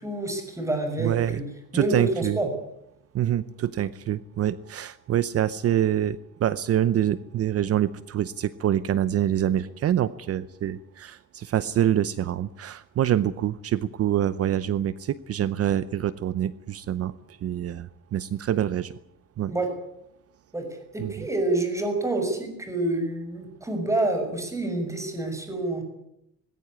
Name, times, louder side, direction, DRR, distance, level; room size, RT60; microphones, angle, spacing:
voice 1, 0.0-1.4 1.7-2.5 19.5-19.7 20.5-25.8, right 2 dB, 10° right, 5 dB, 6.1 m, -28 dB
voice 2, 1.0-1.4 1.7-2.4 3.1-18.9 19.4-19.5 21.0-21.1, right 11 dB, 45° right, 16 dB, 0.8 m, -26 dB
20.0 x 17.0 x 9.8 m, 0.79 s
cardioid pair, 135°, 32 cm